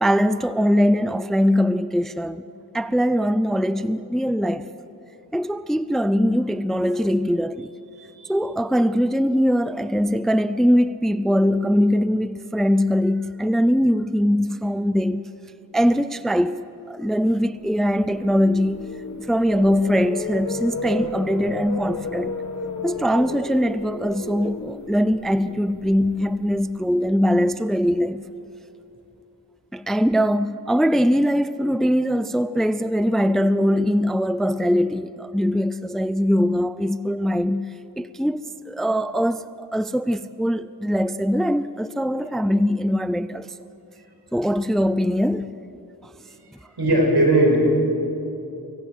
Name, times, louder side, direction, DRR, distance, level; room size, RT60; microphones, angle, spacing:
voice 1, 0.0-2.4 2.7-4.7 5.3-7.7 8.3-15.3 15.7-18.9 19.3-22.4 22.8-28.2 29.7-43.5 44.3-45.6 46.0-46.1, equal, ahead, 0.5 m, -21 dB
voice 2, 8.0-8.3 46.8-47.6, right 1 dB, 80° right, 5.6 m, -18 dB
sound 1, 17.7-27.8, left 3 dB, 50° left, 1.6 m, -34 dB
24.5 x 17.5 x 7.9 m
wide cardioid pair, 70°, 39 cm